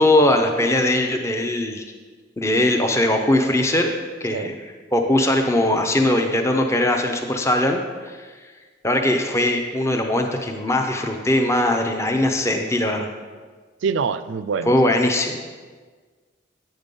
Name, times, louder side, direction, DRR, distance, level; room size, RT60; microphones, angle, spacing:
voice 1, 0.0-1.8 2.4-3.9 4.2-4.6 4.9-7.8 8.1-8.3 8.8-13.1 14.6-15.4, left 1 dB, 15° left, 3 dB, 0.5 m, -20 dB
voice 2, 13.8-14.9, right 5 dB, 65° right, 13 dB, 0.3 m, -25 dB
8.9 x 5.3 x 5.3 m, 1.5 s
head